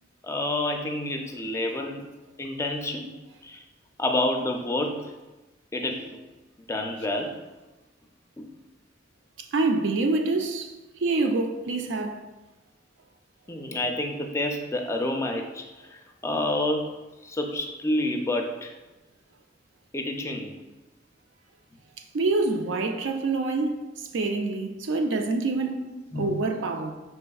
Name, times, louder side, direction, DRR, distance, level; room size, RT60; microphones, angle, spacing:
voice 1, 0.2-2.0 2.4-3.1 3.4-3.6 4.0-5.1 5.7-6.2 6.7-7.3 8.4-8.5 13.5-15.6 15.9-16.9 17.2-18.7 19.9-20.6 25.9-26.3, left 1 dB, 15° left, 0.4 m, -28 dB
voice 2, 9.5-10.7 11.0-12.2 22.1-26.9, right 3 dB, 85° right, 0.4 m, -26 dB
5.3 x 3.3 x 2.3 m
head